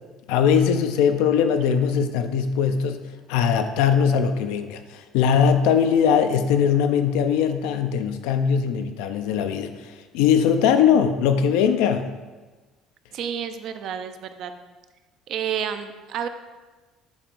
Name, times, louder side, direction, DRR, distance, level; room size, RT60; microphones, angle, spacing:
voice 1, 0.3-12.1, left 7 dB, 85° left, 8 dB, 0.4 m, -21 dB
voice 2, 13.1-14.5 15.3-16.3, right 8 dB, 65° right, 9 dB, 0.4 m, -30 dB
7.0 x 2.5 x 5.3 m, 1.3 s
supercardioid pair, 95°, 0 cm